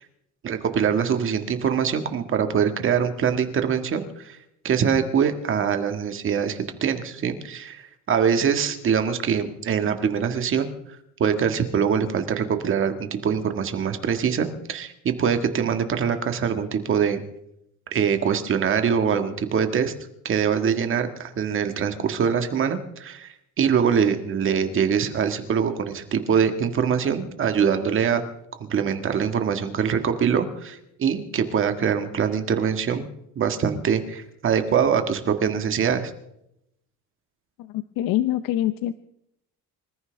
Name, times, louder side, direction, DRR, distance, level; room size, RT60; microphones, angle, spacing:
voice 1, 0.4-4.4 4.6-10.7 11.2-17.2 17.9-19.9 20.3-28.2 28.6-33.1 33.4-36.1, right 7 dB, 35° right, 7 dB, 1.7 m, -23 dB
voice 2, 37.6-38.9, left 13 dB, 75° left, 13 dB, 0.7 m, -25 dB
26.0 x 14.0 x 3.4 m, 0.78 s
cardioid pair, 155°, 34 cm